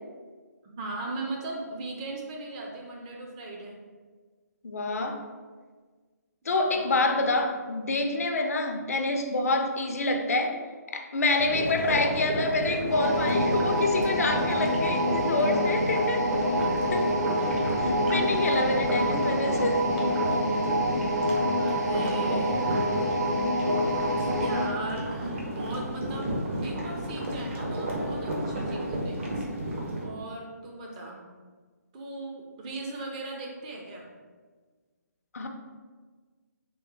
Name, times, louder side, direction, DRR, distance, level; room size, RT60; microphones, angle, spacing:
voice 1, 0.8-3.8 6.7-7.2 21.6-22.7 24.3-26.4 26.6-29.5 30.0-31.2 31.9-34.1, right 2 dB, 25° right, -1 dB, 0.5 m, -38 dB
voice 2, 4.6-5.2 6.5-10.6 10.9-16.2 16.6-17.1 17.8-19.9 35.3-35.5, left 2 dB, 60° left, 4 dB, 0.4 m, -27 dB
sound 1, 11.4-30.0, right 1 dB, 45° right, 0.8 m, -31 dB
sound 2, 12.9-24.8, equal, 80° right, 0.9 m, -27 dB
3.5 x 3.1 x 3.0 m, 1.5 s
figure-of-eight pair, 140°, 9 cm